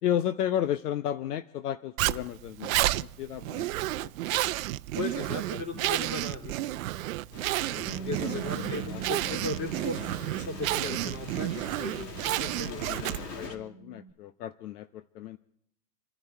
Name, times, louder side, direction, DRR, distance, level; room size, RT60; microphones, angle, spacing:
voice 1, 0.0-3.7 4.0-4.1 4.4-4.6 5.8-5.9 8.2-9.0 12.7-13.1 13.4-15.4, left 11 dB, 75° left, 12 dB, 0.9 m, -33 dB
Zipper (clothing), 2.0-13.4, right 16 dB, 60° right, 0.7 m, -31 dB
voice 2, 4.9-6.8 7.8-13.5, left 2 dB, 30° left, 4 dB, 3.6 m, -37 dB
sound 1, 7.3-13.6, left 4 dB, 90° left, 2.8 m, -43 dB
Bass guitar, 7.9-14.1, right 6 dB, 15° right, 1.6 m, -44 dB
29.5 x 10.5 x 4.5 m, 0.77 s
supercardioid pair, 145°, 47 cm